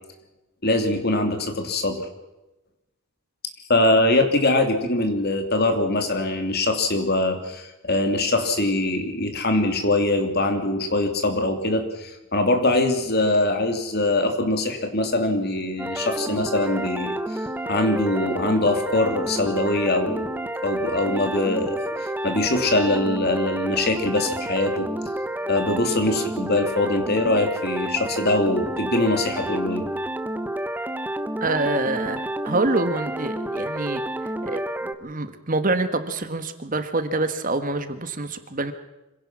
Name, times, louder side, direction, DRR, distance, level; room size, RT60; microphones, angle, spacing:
voice 1, 0.6-2.1 3.7-20.3 20.6-24.9 25.5-29.8, left 2 dB, 45° left, 6 dB, 2.9 m, -23 dB
sound 1, 15.8-34.9, right 1 dB, 10° right, 1.0 m, -29 dB
voice 2, 31.4-38.7, right 2 dB, 35° right, 9 dB, 1.4 m, -26 dB
25.5 x 17.0 x 6.1 m, 1.0 s
head